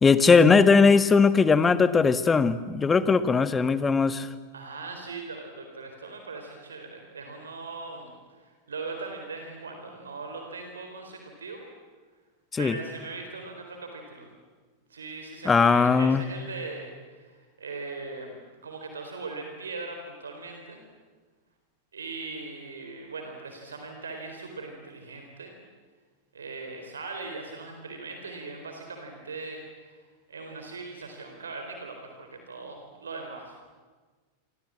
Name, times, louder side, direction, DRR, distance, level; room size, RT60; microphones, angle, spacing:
voice 1, 0.0-4.3 12.5-12.8 15.4-16.2, left 5 dB, 15° left, 13 dB, 1.4 m, -19 dB
voice 2, 4.5-11.6 12.6-14.3 14.9-20.8 21.9-25.5 26.3-30.0 30.3-33.6, right 3 dB, 70° right, 4 dB, 4.1 m, -40 dB
30.0 x 25.5 x 7.6 m, 1.4 s
figure-of-eight pair, 90°, 0 cm